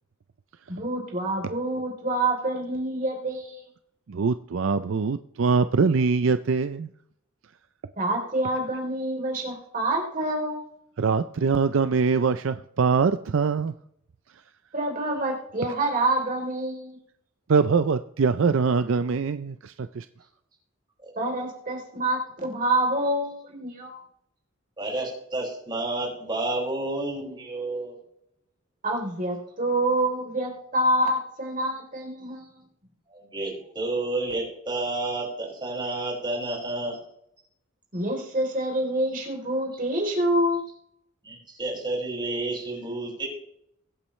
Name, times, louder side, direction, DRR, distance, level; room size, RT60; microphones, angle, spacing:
voice 1, 0.7-3.7 8.0-10.6 14.7-17.0 21.1-24.0 28.8-32.5 37.9-40.6, right 1 dB, 40° right, 0 dB, 3.3 m, -27 dB
voice 2, 4.1-6.9 11.0-13.7 17.5-20.1, right 5 dB, 65° right, 11 dB, 0.5 m, -23 dB
voice 3, 24.8-27.9 33.1-37.0 41.2-43.3, right 2 dB, 20° right, -3 dB, 5.8 m, -30 dB
22.5 x 8.6 x 3.2 m, 0.72 s
head